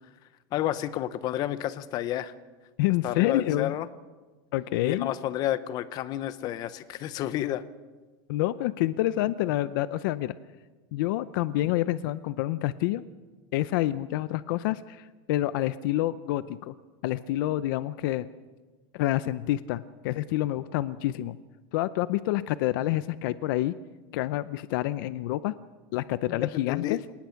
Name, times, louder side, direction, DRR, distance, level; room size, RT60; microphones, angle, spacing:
voice 1, 0.5-2.3 3.0-3.9 4.8-7.6 26.3-27.0, left 12 dB, 30° left, 14 dB, 0.8 m, -30 dB
voice 2, 2.8-3.7 4.5-5.1 8.3-10.3 10.9-13.0 13.5-16.7 17.0-18.3 18.9-21.4 21.7-23.7 24.1-25.5 25.9-27.0, left 15 dB, 60° left, 15 dB, 0.6 m, -28 dB
27.0 x 19.0 x 5.8 m, 1.3 s
supercardioid pair, 175°, 13 cm